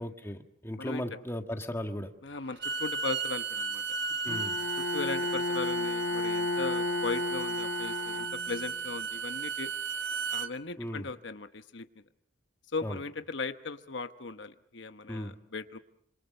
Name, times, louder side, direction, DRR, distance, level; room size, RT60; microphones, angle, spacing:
voice 1, 0.0-2.1 4.2-4.6 10.8-11.1 12.8-13.0 15.1-15.3, equal, 10° left, 5 dB, 1.7 m, -36 dB
voice 2, 2.2-3.8 4.8-9.7 10.3-11.9 12.7-15.8, left 4 dB, 65° left, 9 dB, 1.0 m, -38 dB
Bowed string instrument, 2.5-10.5, right 5 dB, 55° right, 1.2 m, -35 dB
Bowed string instrument 2, 4.3-8.8, left 2 dB, 85° left, 1.2 m, -33 dB
27.5 x 26.5 x 6.6 m, 0.70 s
head